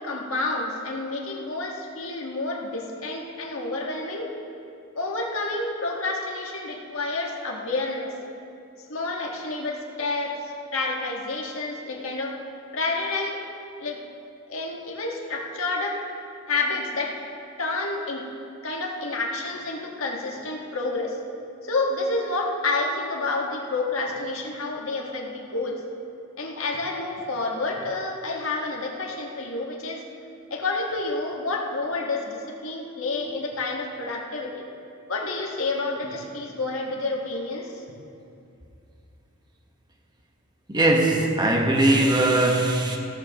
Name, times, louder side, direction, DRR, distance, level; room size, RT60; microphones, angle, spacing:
voice 1, 0.0-4.3 4.9-8.1 8.9-10.4 10.7-12.4 12.7-13.4 13.8-14.0 14.5-16.0 16.5-17.2 17.6-18.3 18.6-21.2 21.6-25.8 26.4-30.0 30.5-34.7 35.1-37.7, left 3 dB, 70° left, 0 dB, 1.6 m, -29 dB
voice 2, 40.7-43.0, right 1 dB, 20° right, 1 dB, 1.2 m, -20 dB
16.0 x 13.5 x 3.0 m, 2.6 s
head